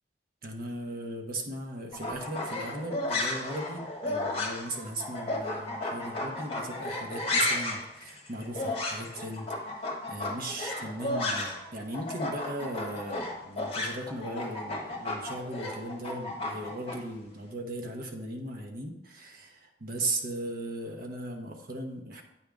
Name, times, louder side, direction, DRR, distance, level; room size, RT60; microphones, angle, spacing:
voice 1, 0.4-22.2, right 1 dB, 55° right, 2 dB, 1.0 m, -37 dB
sound 1, 1.9-11.7 11.9-17.0, left 2 dB, 35° left, 1.4 m, -33 dB
8.7 x 3.5 x 5.1 m, 0.88 s
head